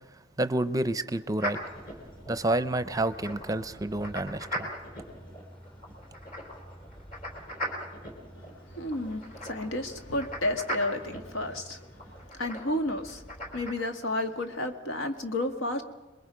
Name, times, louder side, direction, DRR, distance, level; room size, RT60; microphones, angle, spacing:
voice 1, 0.4-1.6 2.3-4.7, right 1 dB, 15° right, 0.6 m, -29 dB
sound 1, 1.4-13.7, equal, 45° left, 3.9 m, -40 dB
sound 2, 1.4-12.3, equal, 25° left, 4.5 m, -52 dB
voice 2, 8.4-15.8, left 1 dB, 85° left, 1.8 m, -32 dB
27.0 x 21.5 x 5.1 m
head